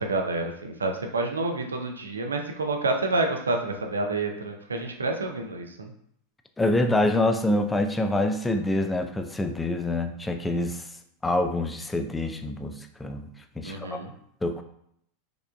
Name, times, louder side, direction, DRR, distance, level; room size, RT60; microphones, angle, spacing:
voice 1, 0.0-5.9 13.6-14.1, right 2 dB, 75° right, 3 dB, 0.6 m, -28 dB
voice 2, 6.6-10.8 11.2-14.0 14.4-14.6, left 1 dB, 10° left, 6 dB, 0.4 m, -26 dB
4.9 x 3.7 x 2.3 m, 0.71 s
figure-of-eight pair, 85°, 0 cm